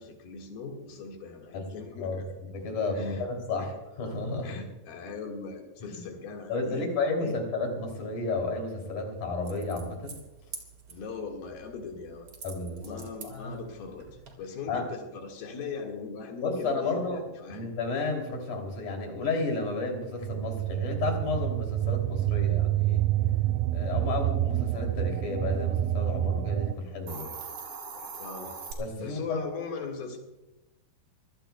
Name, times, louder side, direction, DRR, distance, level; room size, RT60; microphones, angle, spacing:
voice 1, 0.0-2.4 2.9-3.3 3.6-3.7 4.4-6.9 7.2-7.4 10.9-12.3 12.8-14.1 14.4-17.6 28.2-28.6 29.0-30.2, left 4 dB, 85° left, 1 dB, 3.8 m, -39 dB
voice 2, 2.0-4.6 5.8-6.0 6.5-10.2 12.4-13.0 13.2-13.6 14.7-14.8 16.4-17.2 17.5-23.0 23.7-27.3 28.8-29.4, left 3 dB, 55° left, 2 dB, 4.3 m, -32 dB
sound 1, 9.4-14.4, right 5 dB, 40° right, 2.4 m, -48 dB
sound 2, 20.2-26.8, right 13 dB, 85° right, 1.7 m, -28 dB
Hiss, 26.9-28.7, right 5 dB, 70° right, 3.8 m, -40 dB
25.5 x 17.0 x 2.3 m, 0.95 s
omnidirectional pair, 4.2 m